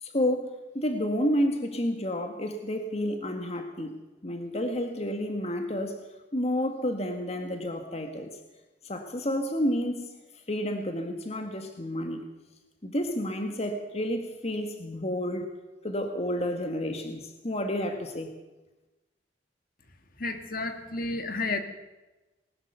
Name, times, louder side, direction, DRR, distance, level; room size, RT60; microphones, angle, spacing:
voice 1, 0.0-4.0 4.2-6.0 6.3-8.4 8.8-10.2 10.5-12.2 12.8-15.5 15.8-18.3, equal, 35° left, 5 dB, 1.8 m, -30 dB
voice 2, 20.2-21.6, left 3 dB, 55° left, 6 dB, 2.0 m, -31 dB
20.0 x 19.5 x 6.9 m, 1.1 s
head